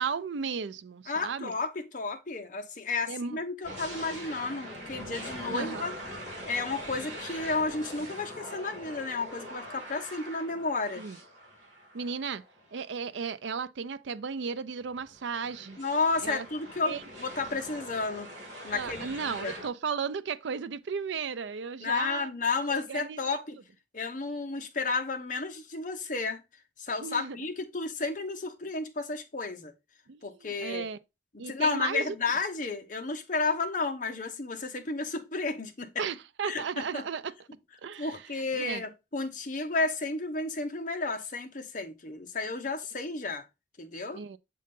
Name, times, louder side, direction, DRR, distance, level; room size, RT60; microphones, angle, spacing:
voice 1, 0.0-1.5 3.1-3.4 5.5-5.9 11.0-11.2 11.9-12.4 12.7-15.8 16.2-16.5 16.9-17.0 18.7-22.3 22.7-23.2 27.0-27.4 30.1-31.0 31.4-32.2 36.0-37.3 37.8-38.2 38.6-38.8 44.1-44.4, right 5 dB, 75° right, 0.5 m, -35 dB
voice 2, 1.1-5.9 6.5-11.0 15.8-18.3 18.6-19.5 21.8-23.6 23.9-26.4 26.8-29.7 30.2-30.9 31.4-35.9 36.4-37.0 38.0-43.4 43.8-44.2, left 3 dB, 45° left, 0.9 m, -32 dB
sound 1, 3.6-12.7 13.2-13.3 14.8-19.7, equal, 40° right, 3.5 m, -43 dB
7.6 x 3.8 x 3.6 m
head